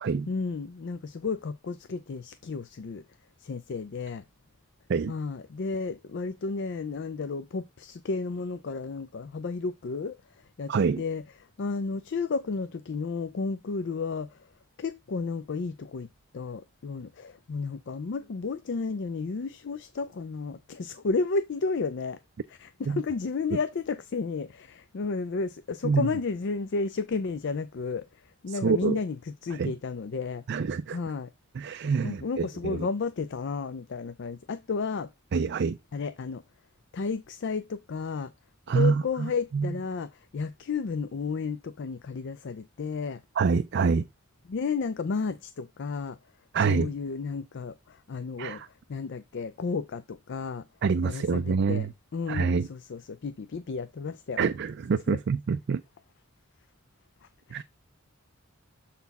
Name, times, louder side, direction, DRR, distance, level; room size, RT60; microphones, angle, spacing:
voice 1, 0.3-3.0 3.4-4.2 5.1-11.2 11.6-14.5 14.8-16.1 16.3-22.2 22.5-29.2 29.4-30.4 30.9-31.3 32.0-35.1 35.9-36.4 36.9-38.3 38.7-43.2 44.5-46.2 46.6-48.6 48.9-50.7 51.0-51.9 52.1-54.5 55.1-55.2 57.2-57.6, left 4 dB, 55° left, 0.4 m, -32 dB
voice 2, 10.7-11.0 22.9-23.0 25.8-26.1 28.5-29.0 29.6-29.7 30.5-31.0 31.5-32.9 35.3-35.8 38.7-39.7 43.4-44.1 46.5-46.9 48.4-48.7 50.8-51.9 52.3-52.7 54.4-55.8 57.5-57.6, right 5 dB, 50° right, 0.4 m, -26 dB
7.0 x 4.2 x 4.0 m
head